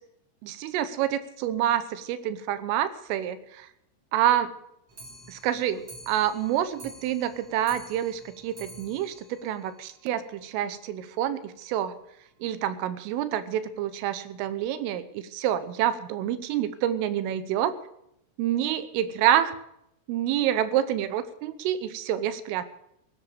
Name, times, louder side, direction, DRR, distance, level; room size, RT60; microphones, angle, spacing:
voice 1, 0.4-3.7 4.1-4.5 5.3-12.0 12.4-17.7 18.4-19.6 20.1-22.6, right 11 dB, 85° right, 12 dB, 3.5 m, -27 dB
Clock, 4.9-10.4 10.7-10.8 11.1-11.2 11.5-11.6 11.9-12.0 12.7-12.8 13.5-13.6 14.3-14.4, right 1 dB, 30° right, 3.5 m, -49 dB
17.5 x 10.5 x 6.9 m, 0.77 s
omnidirectional pair, 5.7 m